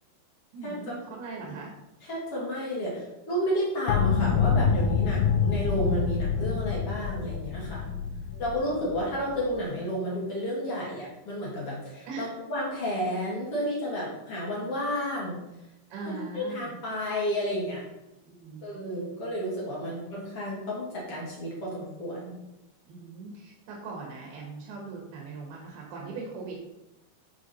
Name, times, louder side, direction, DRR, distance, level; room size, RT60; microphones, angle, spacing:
voice 1, 0.5-1.7 7.9-8.9 12.1-12.3 15.9-16.8 18.3-19.1 19.8-20.0 22.9-26.6, right 4 dB, 90° right, -1 dB, 3.2 m, -40 dB
voice 2, 2.1-7.8 8.4-15.4 16.1-17.8 18.6-22.4, equal, 45° left, -5 dB, 2.2 m, -31 dB
sound 1, 3.9-9.6, left 6 dB, 80° left, 2.1 m, -26 dB
8.3 x 4.8 x 4.1 m, 0.95 s
omnidirectional pair, 4.4 m